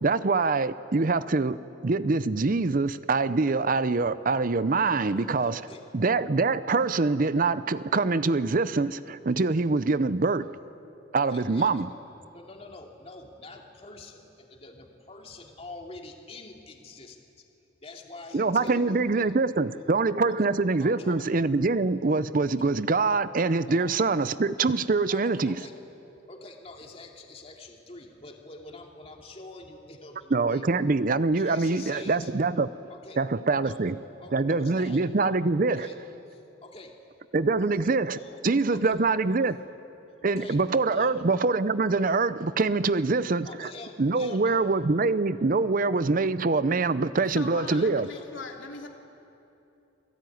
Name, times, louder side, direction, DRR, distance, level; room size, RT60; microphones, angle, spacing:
voice 1, 0.0-5.6 5.9-10.5 11.1-11.9 18.3-25.6 30.3-32.7 33.2-34.0 34.3-35.9 37.3-38.2 38.4-39.6 40.2-43.7 44.0-48.1, right 3 dB, 45° right, 15 dB, 0.6 m, -24 dB
voice 2, 4.9-5.8 11.2-11.8 12.2-17.2 17.8-19.3 20.8-21.2 22.5-22.7 23.7-23.9 25.1-25.7 26.3-30.7 31.3-32.3 32.9-33.2 33.6-33.8 34.2-35.0 35.7-36.0 36.3-36.9 37.6-39.0 40.2-40.6 40.9-41.2 43.4-44.6 47.5-48.3, left 2 dB, 30° left, 2 dB, 2.5 m, -46 dB
voice 3, 47.4-48.9, left 3 dB, 85° left, 2 dB, 2.8 m, -40 dB
27.5 x 18.0 x 9.4 m, 2.8 s
head